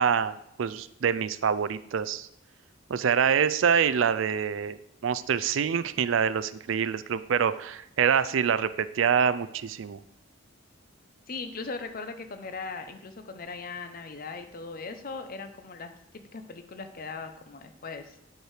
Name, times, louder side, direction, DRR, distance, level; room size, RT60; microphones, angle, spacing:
voice 1, 0.0-2.3 2.9-4.8 5.0-10.0, right 7 dB, 70° right, 14 dB, 0.4 m, -26 dB
voice 2, 11.3-18.2, left 4 dB, 45° left, 8 dB, 0.7 m, -39 dB
9.3 x 4.6 x 4.9 m, 0.81 s
head